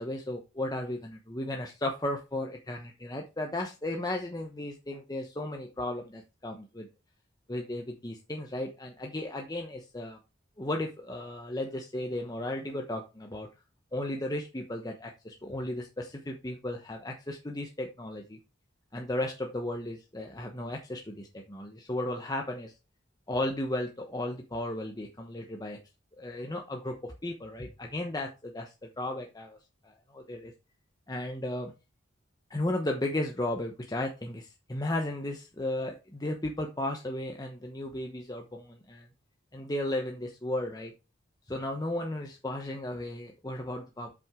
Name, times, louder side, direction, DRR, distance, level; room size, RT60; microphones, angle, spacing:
voice 1, 0.0-6.9 7.5-10.2 10.6-13.5 13.9-18.4 18.9-22.7 23.3-25.8 26.2-29.6 29.8-30.5 31.1-31.7 32.5-39.1 39.5-40.9 41.5-44.1, left 1 dB, 20° left, 2 dB, 1.0 m, -35 dB
7.8 x 6.1 x 3.7 m, 0.28 s
head